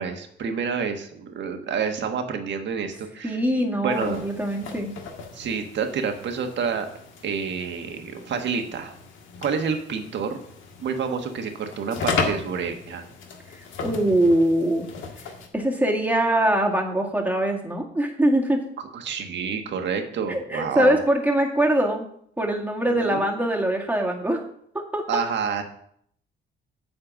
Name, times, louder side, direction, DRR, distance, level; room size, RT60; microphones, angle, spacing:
voice 1, 0.0-4.2 5.3-6.9 7.2-8.9 9.4-10.4 10.8-13.0 18.9-21.0 22.9-23.3 25.1-25.6, right 6 dB, 65° right, 5 dB, 1.4 m, -28 dB
voice 2, 3.2-4.9 13.8-14.9 15.5-18.6 20.3-22.0 22.4-24.4 24.7-25.0, right 1 dB, 10° right, 0 dB, 2.1 m, -22 dB
sound 1, 3.9-15.5, left 4 dB, 75° left, 1.7 m, -35 dB
9.1 x 4.4 x 7.4 m, 0.67 s
cardioid pair, 90°, 20 cm